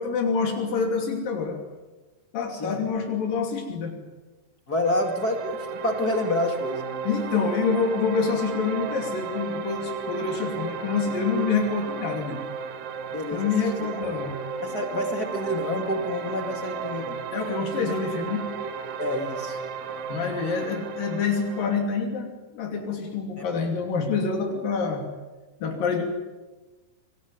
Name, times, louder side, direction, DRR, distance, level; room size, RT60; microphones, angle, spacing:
voice 1, 0.0-1.6 2.3-4.0 7.0-12.4 13.3-14.4 17.3-18.5 20.1-25.0 25.6-26.0, left 5 dB, 80° left, 2 dB, 4.6 m, -27 dB
voice 2, 4.7-6.9 13.1-13.5 13.8-13.9 14.6-17.2 19.0-19.6, left 1 dB, 30° left, 4 dB, 2.5 m, -28 dB
sound 1, 4.8-21.8, right 6 dB, 85° right, 3.3 m, -34 dB
25.5 x 20.5 x 9.5 m, 1.2 s
omnidirectional pair, 3.9 m